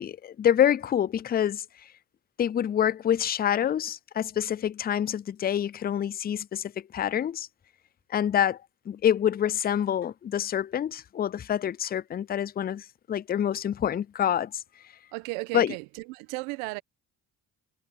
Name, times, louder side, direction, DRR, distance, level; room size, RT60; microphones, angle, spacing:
voice 1, 0.0-1.6 2.4-7.5 8.1-8.6 8.9-14.6 15.5-15.7, left 10 dB, 25° left, 0.4 m, -26 dB
voice 2, 15.1-16.8, right 25 dB, 85° right, 1.4 m, -35 dB
hypercardioid pair, 55°, 43 cm